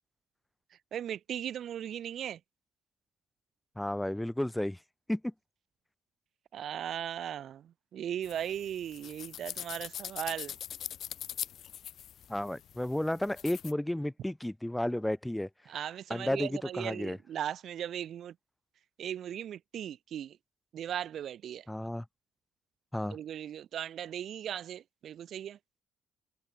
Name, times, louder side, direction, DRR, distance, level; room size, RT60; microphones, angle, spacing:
voice 1, 0.9-2.4 6.5-10.5 15.7-18.3 19.0-20.4 20.7-21.6 23.1-25.6, right 10 dB, 65° right, 0.8 m, -38 dB
voice 2, 3.8-4.8 5.1-5.3 12.3-15.5 16.1-17.2 21.7-22.0 22.9-23.2, left 1 dB, 5° left, 0.6 m, -32 dB
sound 1, 8.2-13.7, left 10 dB, 70° left, 0.6 m, -42 dB
cardioid pair, 90°, 0 cm